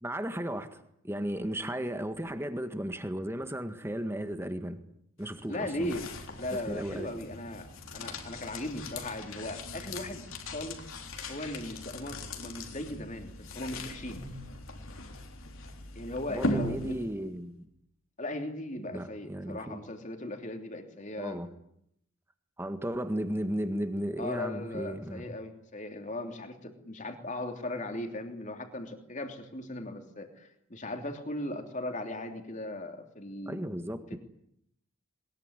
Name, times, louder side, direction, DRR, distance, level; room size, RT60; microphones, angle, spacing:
voice 1, 0.0-4.8 5.2-5.9 6.5-7.1 16.3-17.7 18.9-19.8 21.2-21.5 22.6-25.4 33.5-34.2, equal, 10° right, 8 dB, 1.7 m, -35 dB
sound 1, 5.2-17.4, left 1 dB, 65° left, 3.8 m, -39 dB
voice 2, 5.5-6.1 6.4-10.8 11.3-14.3 15.9-17.0 18.2-21.4 24.2-33.6 34.1-34.2, left 1 dB, 35° left, 5 dB, 3.1 m, -38 dB
21.5 x 21.0 x 9.9 m, 0.74 s
head